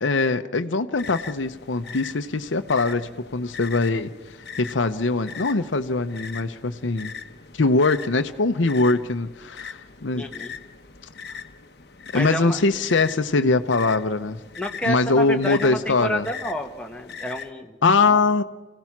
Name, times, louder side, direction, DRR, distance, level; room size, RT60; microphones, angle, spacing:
voice 1, 0.0-7.1 7.5-10.3 12.1-14.4 14.9-16.3 17.8-18.4, left 3 dB, 85° left, 8 dB, 0.8 m, -22 dB
sound 1, 1.0-17.5, left 6 dB, 55° left, 1.0 m, -40 dB
voice 2, 10.1-10.5 12.1-12.6 14.6-17.8 18.0-18.4, equal, 5° left, 2 dB, 1.4 m, -30 dB
27.0 x 16.0 x 6.0 m, 1.3 s
head